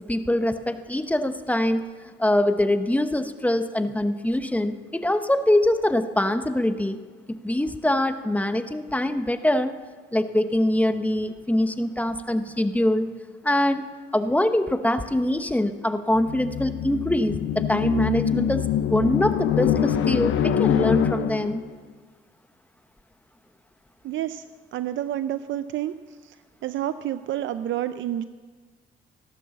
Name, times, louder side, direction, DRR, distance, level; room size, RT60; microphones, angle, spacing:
voice 1, 0.1-1.9 2.2-7.0 7.3-9.7 10.1-13.1 13.4-13.9 14.1-21.6, left 1 dB, 5° left, 9 dB, 1.0 m, -23 dB
sound 1, 16.1-21.7, left 10 dB, 80° left, 0.8 m, -24 dB
voice 2, 24.0-24.4 24.7-25.9 26.2-26.3 26.6-28.2, right 12 dB, 75° right, 12 dB, 0.5 m, -29 dB
16.0 x 11.5 x 7.2 m, 1.5 s
cardioid pair, 90°, 20 cm